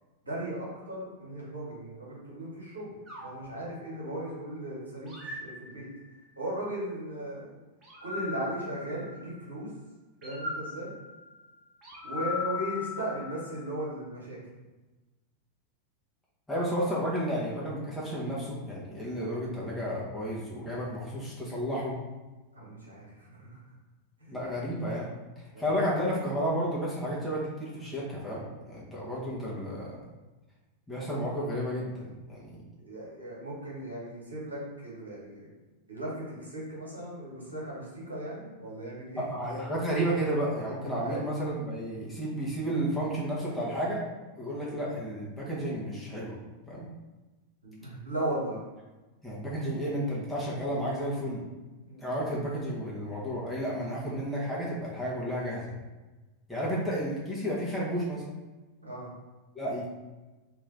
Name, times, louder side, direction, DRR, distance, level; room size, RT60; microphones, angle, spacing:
voice 1, 0.2-3.0 3.2-5.9 6.4-7.6 8.0-9.7 10.2-10.9 12.0-14.4 22.5-23.6 24.2-24.4 25.5-25.7 32.8-35.5 35.9-39.2 41.0-41.3 47.6-48.6 51.8-52.1 58.8-59.1, right 1 dB, 80° right, -5 dB, 1.4 m, -37 dB
sound 1, 3.1-4.4 5.1-6.3 7.8-9.5 10.2-13.7, left 4 dB, 25° right, 1.1 m, -39 dB
voice 2, 16.5-22.0 24.3-30.0 30.9-32.6 39.2-44.1 44.4-46.4 46.7-46.9 49.2-51.4 52.0-55.7 56.5-58.2 59.5-59.9, equal, 5° left, -7 dB, 1.1 m, -32 dB
3.2 x 3.0 x 3.8 m, 1.2 s
figure-of-eight pair, 90°, 0 cm